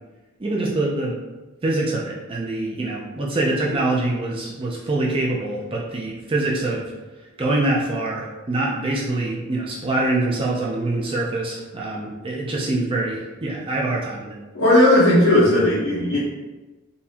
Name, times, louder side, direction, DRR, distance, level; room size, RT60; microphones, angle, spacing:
voice 1, 0.4-1.2 1.6-6.9 7.2-14.4, right 2 dB, 25° right, -3 dB, 0.4 m, -24 dB
voice 2, 14.5-16.2, left 1 dB, 60° left, -10 dB, 0.9 m, -16 dB
4.0 x 2.7 x 2.8 m, 1.2 s
head